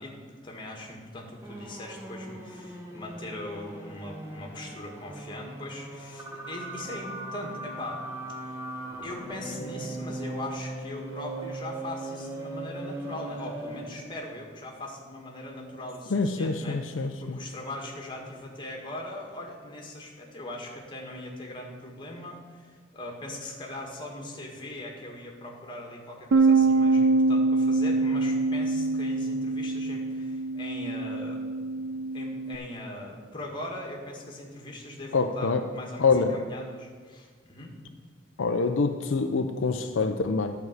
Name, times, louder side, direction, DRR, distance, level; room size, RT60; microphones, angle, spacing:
voice 1, 0.0-8.6 9.0-31.4 31.8-37.7, left 1 dB, 25° left, 0 dB, 1.7 m, -40 dB
sound 1, 1.4-14.1, right 2 dB, 15° right, 1.2 m, -39 dB
voice 2, 16.1-17.4 35.1-35.6 36.0-36.4 38.4-40.5, left 4 dB, 75° left, 6 dB, 0.5 m, -25 dB
Bass guitar, 26.3-32.6, right 3 dB, 75° right, 0.5 m, -24 dB
11.0 x 4.7 x 8.0 m, 1.5 s
head